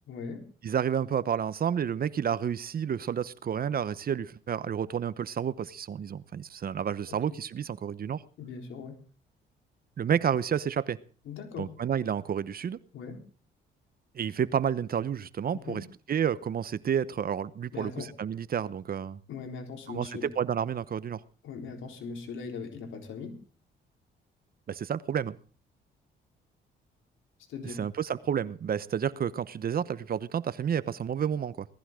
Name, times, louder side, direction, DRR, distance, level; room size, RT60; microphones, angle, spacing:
voice 1, 0.1-0.5 7.1-7.4 8.4-9.0 11.2-11.7 12.9-13.2 15.5-15.9 17.7-18.1 19.3-20.3 21.4-23.4 27.5-27.8, left 5 dB, 80° left, 4.0 m, -40 dB
voice 2, 0.6-8.2 10.0-11.0 11.6-12.8 14.1-19.2 19.9-21.2 24.7-25.4 27.8-31.7, right 8 dB, 50° right, 0.9 m, -30 dB
18.5 x 15.0 x 3.7 m
cardioid pair, 90°, 20 cm